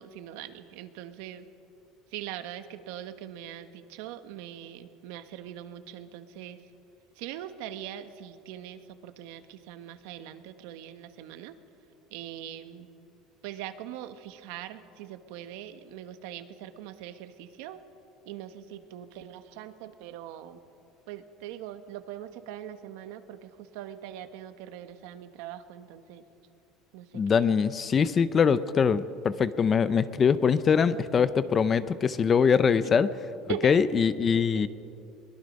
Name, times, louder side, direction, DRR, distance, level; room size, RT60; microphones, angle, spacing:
voice 1, 0.0-1.5 2.1-6.6 7.1-11.6 12.1-12.9 13.4-17.8 18.2-20.6 21.1-26.2 26.9-27.2 32.8-32.9 33.5-33.8 34.3-34.7, right 11 dB, 75° right, 9 dB, 1.3 m, -41 dB
voice 2, 27.1-33.1 33.6-34.7, left 6 dB, 20° left, 15 dB, 0.5 m, -23 dB
23.0 x 21.5 x 5.3 m, 2.6 s
cardioid pair, 170°, 0 cm